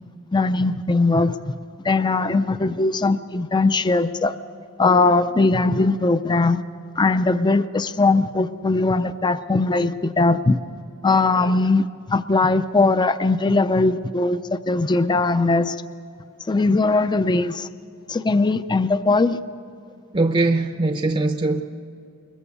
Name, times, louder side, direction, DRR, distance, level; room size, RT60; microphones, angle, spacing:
voice 1, 0.3-1.5 1.8-4.4 4.8-6.6 7.0-10.6 11.0-15.8 16.4-17.7 18.1-19.4, left 3 dB, 20° left, 12 dB, 0.4 m, -20 dB
voice 2, 20.1-21.6, right 2 dB, 25° right, 7 dB, 0.7 m, -21 dB
21.5 x 21.0 x 8.3 m, 2.5 s
head